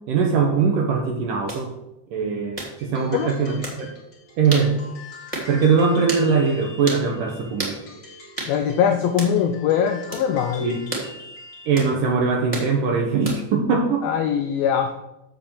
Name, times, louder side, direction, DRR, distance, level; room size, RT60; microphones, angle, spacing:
voice 1, 0.1-1.7 2.1-4.0 4.4-4.8 5.5-7.8 10.6-10.8 11.7-14.1, right 5 dB, 70° right, 2 dB, 2.1 m, -21 dB
sound 1, 1.5-1.6 2.6-2.7 3.6-3.8 4.5-4.7 5.3-5.5 6.1-6.3 6.9-7.0 7.6-7.8 8.4-8.5 9.2-9.4 10.1-10.3 10.9-11.1 11.8-11.9 12.5-12.7 13.2-13.5, right 1 dB, 10° right, 1.9 m, -30 dB
sound 2, 2.8-11.8, left 3 dB, 35° left, 2.2 m, -44 dB
voice 2, 8.5-10.8 14.0-14.9, left 8 dB, 90° left, 6 dB, 2.1 m, -22 dB
7.6 x 7.6 x 7.0 m, 0.90 s
omnidirectional pair, 5.0 m